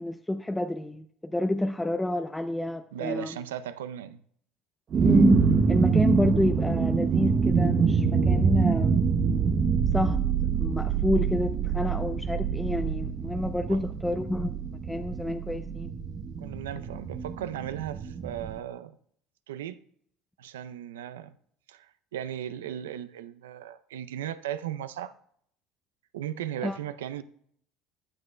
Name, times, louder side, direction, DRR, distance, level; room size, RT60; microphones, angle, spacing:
voice 1, 0.0-3.4 5.0-9.0 9.9-10.3 10.6-14.6 14.9-15.9 26.6-26.8, left 1 dB, 10° left, 0.6 m, -29 dB
voice 2, 2.9-4.2 13.7-13.8 16.4-19.0 19.5-19.8 20.4-21.3 21.7-25.1 26.1-27.2, right 10 dB, 90° right, 0.5 m, -36 dB
sound 1, 4.9-18.6, right 6 dB, 45° right, 0.8 m, -25 dB
14.5 x 9.6 x 2.2 m
hypercardioid pair, 80°, 0 cm